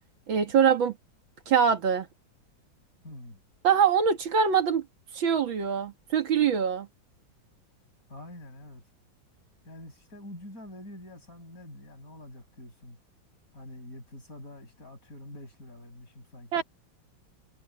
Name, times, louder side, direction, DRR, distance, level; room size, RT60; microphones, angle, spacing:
voice 1, 0.3-0.9 1.5-2.1 3.6-4.8 5.1-6.9 16.5-16.6, right 7 dB, 75° right, 2.5 m, -23 dB
voice 2, 3.0-3.4 8.1-8.8 9.6-13.0 13.5-16.6, left 1 dB, 45° left, 8.4 m, -46 dB
omnidirectional pair, 2.1 m